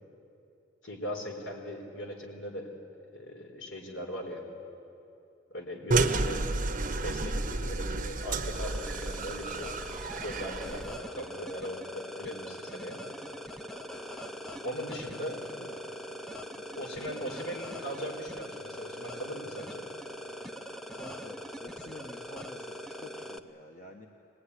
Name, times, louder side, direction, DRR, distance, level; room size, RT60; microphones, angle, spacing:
voice 1, 0.8-2.7 3.1-4.5 5.5-6.5 7.0-9.7 10.2-13.0 14.6-15.4 16.7-19.9, equal, 75° left, 1 dB, 4.5 m, -39 dB
sound 1, 5.9-11.0, right 3 dB, 45° right, 1.0 m, -31 dB
sound 2, 8.5-23.4, equal, ahead, 0.7 m, -42 dB
voice 2, 15.4-15.8 16.6-18.3 20.9-24.1, left 2 dB, 40° left, 1 dB, 1.4 m, -49 dB
24.0 x 20.0 x 10.0 m, 2.7 s
head